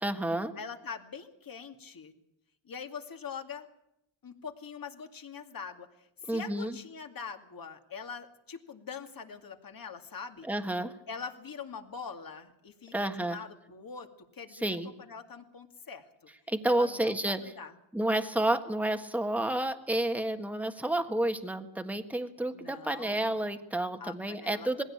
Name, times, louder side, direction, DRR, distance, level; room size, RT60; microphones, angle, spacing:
voice 1, 0.0-0.5 6.3-6.8 10.4-10.9 12.9-13.4 14.6-14.9 16.5-17.4 17.9-24.8, right 1 dB, 5° right, 7 dB, 1.6 m, -30 dB
voice 2, 0.6-2.1 2.6-3.7 4.2-10.5 11.1-14.1 14.3-14.6 15.0-16.1 16.7-17.7 22.5-23.4 24.0-24.8, left 6 dB, 45° left, 6 dB, 2.4 m, -43 dB
20.0 x 16.5 x 8.7 m, 0.84 s
cardioid pair, 105°, 46 cm